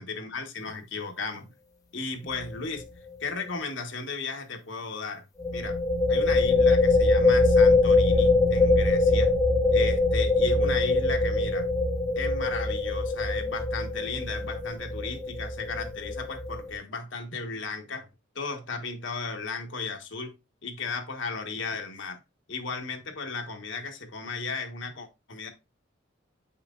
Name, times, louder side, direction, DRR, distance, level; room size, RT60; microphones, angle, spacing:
voice 1, 0.0-1.5 1.9-2.8 3.2-5.2 5.5-5.8 6.1-9.3 9.7-11.7 12.2-18.1 18.3-20.3 20.6-22.2 22.5-25.5, left 4 dB, 70° left, 1.2 m, -35 dB
sound 1, 2.3-2.6 2.8-2.9 5.4-16.8, left 2 dB, 15° left, 1.0 m, -23 dB
7.8 x 5.7 x 2.4 m
head